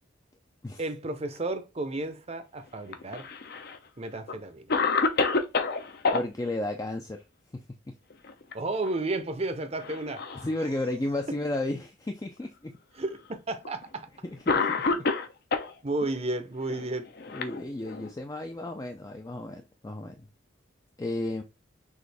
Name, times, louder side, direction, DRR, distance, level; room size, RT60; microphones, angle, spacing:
voice 1, 0.8-3.3 4.0-4.7 8.5-10.3 13.0-14.1 15.8-17.1, right 2 dB, 30° right, 0.7 m, -32 dB
Cough, 2.9-3.8 4.3-4.4 4.7-6.2 8.1-8.5 8.9-9.0 9.8-10.5 11.3-11.4 12.4-12.5 13.6-13.8 14.5-15.7 16.7-18.1, left 4 dB, 55° left, 0.7 m, -28 dB
voice 2, 6.1-7.2 7.5-7.9 10.4-12.8 14.2-15.1 17.3-20.3 21.0-21.4, left 1 dB, 20° left, 0.4 m, -33 dB
6.2 x 2.6 x 3.4 m
head